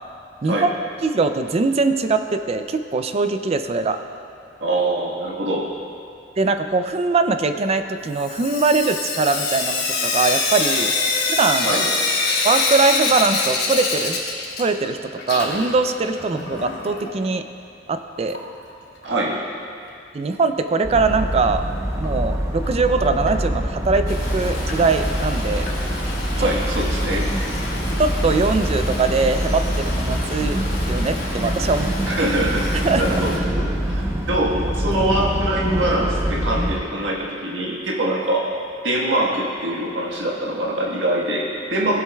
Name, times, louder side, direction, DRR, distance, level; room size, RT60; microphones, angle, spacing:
voice 1, 1.0-4.0 6.4-10.9 11.4-11.7 12.4-14.2 14.6-17.4 17.9-18.4 20.1-21.6 22.0-25.7 26.4-26.5 28.0-30.6 30.9-32.1 32.8-33.2, right 3 dB, 35° right, 8 dB, 0.4 m, -21 dB
voice 2, 4.6-5.7 11.6-11.9 19.0-19.4 26.3-27.3 32.0-32.7 33.0-33.5 33.8-34.0 34.3-38.6 38.8-42.0, right 1 dB, 85° right, -3 dB, 1.4 m, -23 dB
Sink (filling or washing) / Drip, 8.2-14.9 15.2-17.1 18.3-18.4 18.7-18.8 19.0-19.1 22.0-22.1 22.6-22.7 23.3-23.4 24.0-24.1 24.7-24.8 25.7-25.8, left 4 dB, 60° left, 1.4 m, -24 dB
sound 1, 20.8-36.8, equal, 15° right, 0.8 m, -25 dB
Stream, 24.1-33.4, left 1 dB, 90° left, 2.4 m, -32 dB
16.5 x 7.7 x 2.3 m, 2.4 s
head